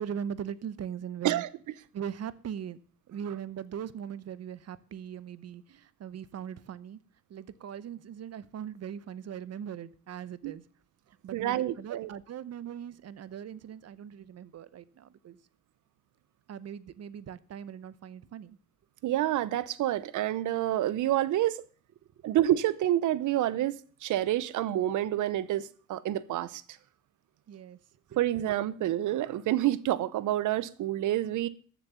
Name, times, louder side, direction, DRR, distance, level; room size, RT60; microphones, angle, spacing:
voice 1, 0.0-1.4 1.9-2.8 3.1-7.0 7.3-10.6 11.2-15.4 16.5-18.6 22.2-22.3 27.5-27.8, right 8 dB, 55° right, 0.9 m, -40 dB
voice 2, 11.3-12.1 19.0-21.6 22.2-23.8 24.0-26.6 28.2-31.5, right 13 dB, 80° right, 0.9 m, -28 dB
14.0 x 7.4 x 6.9 m
cardioid pair, 90°, 30 cm